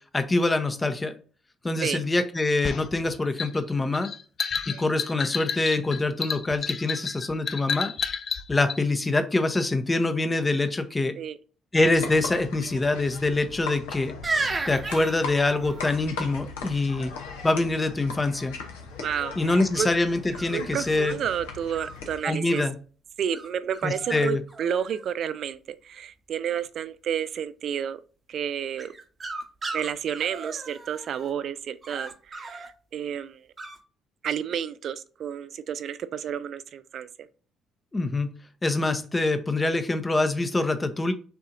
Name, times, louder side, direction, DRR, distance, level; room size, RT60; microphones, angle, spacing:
voice 1, 0.1-1.1 1.6-4.1 4.7-7.9 8.5-11.1 11.7-14.1 14.7-17.1 17.4-18.5 19.4-21.2 22.2-22.7 23.8-24.4 37.9-38.3 38.6-41.1, left 2 dB, 25° left, 0.7 m, -25 dB
sound 1, 2.6-8.8, left 6 dB, 50° left, 0.4 m, -31 dB
sound 2, 11.8-22.2, left 4 dB, 80° left, 0.8 m, -39 dB
sound 3, 14.2-16.0 19.1-19.6 20.3-21.1 21.7-22.7 23.3-23.5 23.7-24.2 24.5-25.1 28.8-31.3 31.8-32.7 33.6-33.8, right 3 dB, 35° right, 1.0 m, -35 dB
voice 2, 19.0-19.9 20.5-22.6 23.2-28.0 28.3-28.9 29.7-33.4 34.2-37.3, right 8 dB, 60° right, 0.4 m, -31 dB
6.9 x 2.7 x 2.5 m
hypercardioid pair, 50°, 0 cm